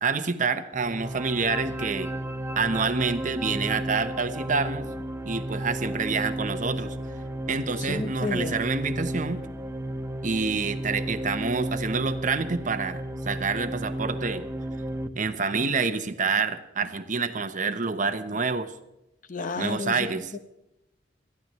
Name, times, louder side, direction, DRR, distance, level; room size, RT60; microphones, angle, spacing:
voice 1, 0.0-2.1 2.6-4.9 5.2-6.9 7.5-9.4 10.2-14.4 15.1-18.7 19.6-20.3, right 4 dB, 45° right, 10 dB, 0.9 m, -27 dB
sound 1, 0.7-15.1, right 1 dB, 15° right, 0.8 m, -33 dB
voice 2, 7.8-8.6 19.3-20.4, left 3 dB, 45° left, 10 dB, 0.8 m, -32 dB
21.5 x 13.5 x 3.1 m, 0.91 s
head